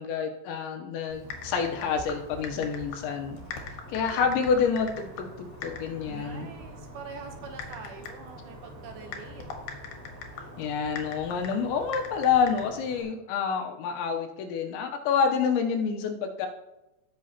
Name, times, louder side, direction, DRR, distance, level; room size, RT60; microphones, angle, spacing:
voice 1, 0.0-3.4 3.9-6.5 10.6-16.5, left 6 dB, 80° left, 4 dB, 3.0 m, -28 dB
Typing, 1.1-13.0, left 5 dB, 65° left, 2.7 m, -43 dB
sound 1, 1.2-13.0, right 2 dB, 55° right, 3.5 m, -49 dB
voice 2, 3.4-4.4 6.1-9.5, right 5 dB, 75° right, 4 dB, 2.3 m, -45 dB
17.5 x 6.6 x 2.9 m, 0.96 s
omnidirectional pair, 5.5 m